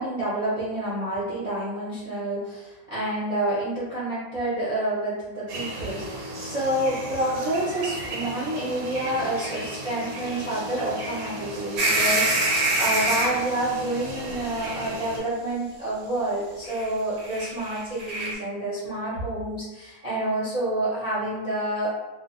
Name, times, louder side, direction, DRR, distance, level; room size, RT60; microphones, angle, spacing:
voice 1, 0.0-21.9, right 1 dB, 35° right, -11 dB, 0.6 m, -28 dB
sound 1, 5.5-15.2, right 1 dB, 80° right, 1.1 m, -35 dB
sound 2, 11.8-13.4 14.6-14.7 16.6-16.9 17.2-18.3, right 2 dB, 65° right, 0.9 m, -25 dB
2.5 x 2.1 x 2.5 m, 1.1 s
omnidirectional pair, 1.5 m